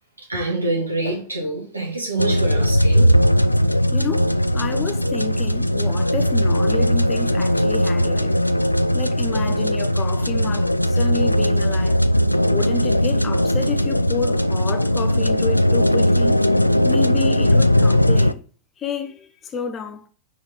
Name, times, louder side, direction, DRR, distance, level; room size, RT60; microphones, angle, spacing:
voice 1, 0.3-3.1, right 2 dB, 80° right, 2.5 m, -26 dB
sound 1, 2.2-18.3, equal, 85° left, 0.3 m, -18 dB
voice 2, 3.9-8.4 8.9-12.0 12.5-16.4 16.8-18.4 18.8-20.1, left 5 dB, 25° left, 0.9 m, -30 dB
5.0 x 4.6 x 5.3 m
figure-of-eight pair, 90°, 0 cm